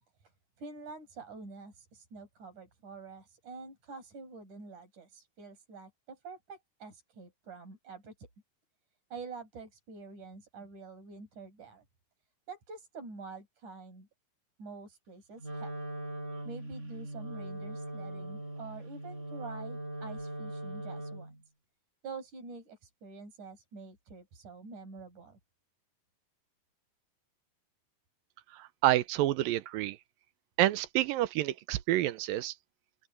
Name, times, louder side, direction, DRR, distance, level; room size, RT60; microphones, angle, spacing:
voice 1, 0.6-8.3 9.1-11.8 12.5-14.1 14.6-15.7 16.5-21.4 22.0-25.4, right 4 dB, 50° right, 7.4 m, -47 dB
Wind instrument woodwind instrument, 15.4-21.4, right 1 dB, 15° right, 6.5 m, -40 dB
voice 2, 28.5-30.0 30.6-32.5, right 15 dB, 75° right, 2.3 m, -28 dB
open air
omnidirectional pair, 4.5 m